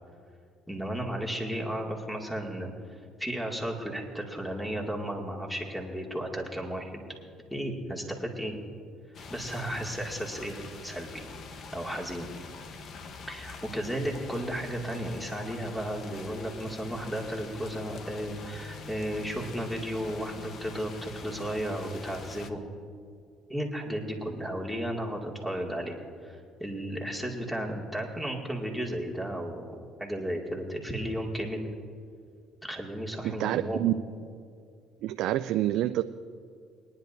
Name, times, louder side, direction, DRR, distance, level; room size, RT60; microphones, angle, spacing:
voice 1, 0.7-7.0 7.5-8.6 9.3-10.6 10.8-11.2 11.7-12.3 13.3-22.6 23.5-29.7 30.0-31.7 32.6-33.9, equal, ahead, -1 dB, 2.2 m, -34 dB
sound 1, 9.1-22.5, left 4 dB, 55° left, 1.0 m, -45 dB
voice 2, 33.2-33.9 35.0-36.0, right 14 dB, 75° right, 9 dB, 0.3 m, -27 dB
22.5 x 10.5 x 2.7 m, 2.3 s
supercardioid pair, 75°, 0 cm